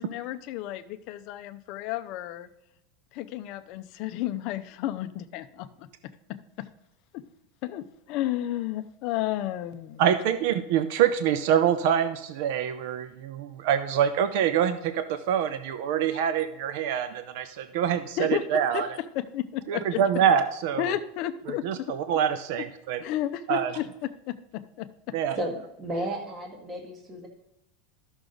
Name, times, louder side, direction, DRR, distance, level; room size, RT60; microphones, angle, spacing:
voice 1, 0.0-2.5 3.1-5.9 6.3-6.7 7.1-7.2 7.6-10.0 18.2-20.2 20.8-21.9 23.0-25.2, left 13 dB, 45° left, 9 dB, 0.6 m, -32 dB
voice 2, 10.0-18.9 19.7-21.0 21.6-23.0 23.5-23.7 25.1-25.4, right 9 dB, 60° right, 10 dB, 0.6 m, -25 dB
voice 3, 25.4-27.3, right 1 dB, 20° right, 2 dB, 1.5 m, -33 dB
13.0 x 6.1 x 3.9 m, 0.82 s
supercardioid pair, 165°, 0 cm